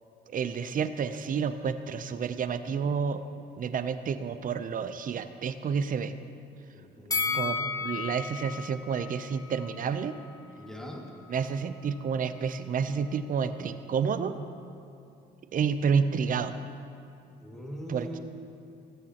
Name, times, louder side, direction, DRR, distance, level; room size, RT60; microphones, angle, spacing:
voice 1, 0.3-3.2 3.6-6.1 7.3-10.1 11.3-14.3 15.5-16.5 17.9-18.2, right 6 dB, 45° right, 11 dB, 0.6 m, -30 dB
voice 2, 6.7-7.8 10.6-11.0 17.4-18.2, equal, ahead, -1 dB, 2.0 m, -41 dB
Bell, 7.1-10.3 10.6-10.8, left 5 dB, 20° left, 1.0 m, -34 dB
15.0 x 13.5 x 2.9 m, 2.6 s
cardioid pair, 90°, 20 cm